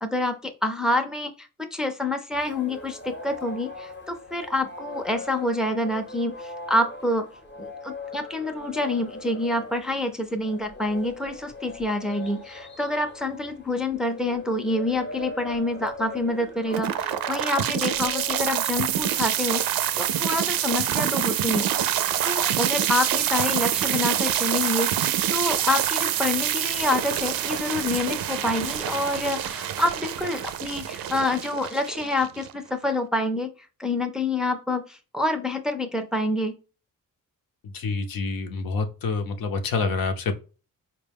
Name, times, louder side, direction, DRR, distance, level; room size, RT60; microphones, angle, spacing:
voice 1, 0.0-7.3 7.6-21.7 22.2-33.5 33.8-36.6, left 2 dB, ahead, 0.4 m, -27 dB
sound 1, 2.3-19.3, left 2 dB, 30° left, 0.8 m, -40 dB
sound 2, 16.7-32.7, right 11 dB, 80° right, 0.5 m, -26 dB
voice 2, 37.6-40.3, left 4 dB, 80° left, 0.8 m, -27 dB
4.4 x 2.2 x 3.4 m
cardioid pair, 110°, 35 cm